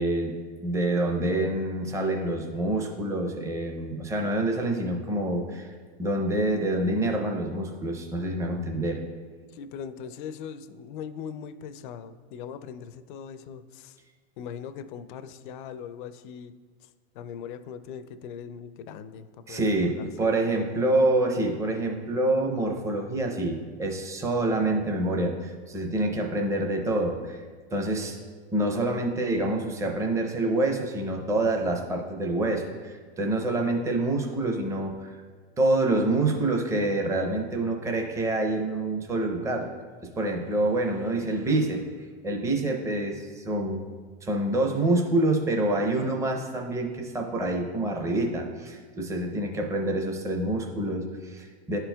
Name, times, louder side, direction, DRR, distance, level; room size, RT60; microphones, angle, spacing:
voice 1, 0.0-5.7 6.0-9.0 19.5-27.4 27.7-28.2 28.5-35.1 35.6-39.7 40.0-41.9 42.2-43.8 44.2-51.8, right 2 dB, 10° right, 2 dB, 0.6 m, -27 dB
voice 2, 9.5-14.0 14.4-16.5 16.8-16.9 17.1-20.7, left 7 dB, 50° left, 12 dB, 0.4 m, -40 dB
11.0 x 4.5 x 2.2 m, 1.5 s
hypercardioid pair, 125°, 32 cm